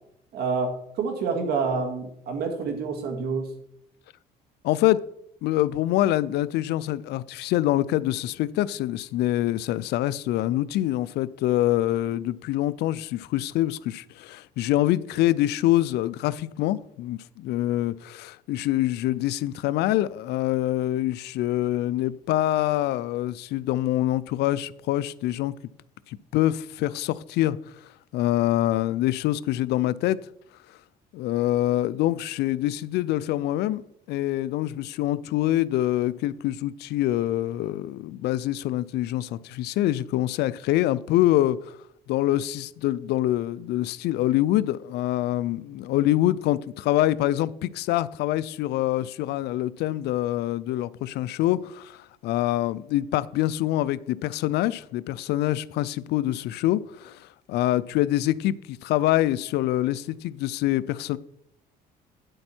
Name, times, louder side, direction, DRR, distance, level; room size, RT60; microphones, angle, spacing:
voice 1, 0.3-3.6, right 4 dB, 70° right, 2.0 m, -28 dB
voice 2, 4.6-5.0 5.4-25.5 26.1-27.6 28.1-30.2 31.1-41.8 42.1-61.2, left 14 dB, 75° left, 0.4 m, -25 dB
9.7 x 7.8 x 4.4 m
cardioid pair, 110°, 17 cm